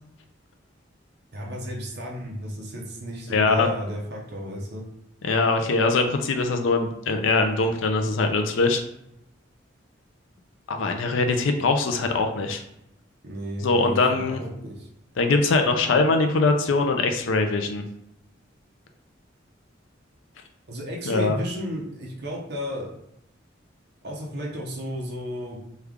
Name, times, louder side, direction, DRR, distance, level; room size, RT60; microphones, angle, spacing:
voice 1, 1.3-4.8 13.2-14.9 20.7-22.9 24.0-25.6, equal, 55° right, -2 dB, 0.7 m, -33 dB
voice 2, 3.3-3.7 5.2-8.8 10.7-12.6 13.6-14.4 15.2-17.8 21.1-21.4, left 3 dB, 85° left, 5 dB, 0.4 m, -22 dB
3.2 x 2.3 x 3.5 m, 0.79 s
head